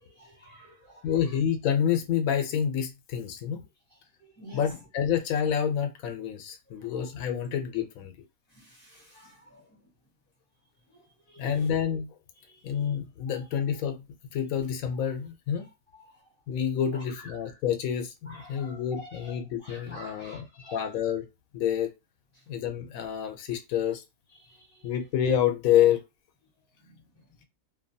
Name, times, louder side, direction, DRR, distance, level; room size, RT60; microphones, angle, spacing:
voice 1, 0.0-1.2 4.2-4.8 6.7-6.9 8.5-9.8 10.9-11.7 12.5-12.8 15.9-16.0 16.9-17.5 18.3-20.9 24.4-24.9 26.8-27.0, left 1 dB, 10° left, 1.0 m, -49 dB
voice 2, 1.0-3.6 4.5-8.1 11.4-12.1 12.6-14.0 14.3-15.7 16.5-20.4 20.7-21.3 21.5-21.9 22.5-24.0 24.8-26.0, left 9 dB, 85° left, 1.0 m, -28 dB
2.7 x 2.2 x 2.6 m
omnidirectional pair, 1.4 m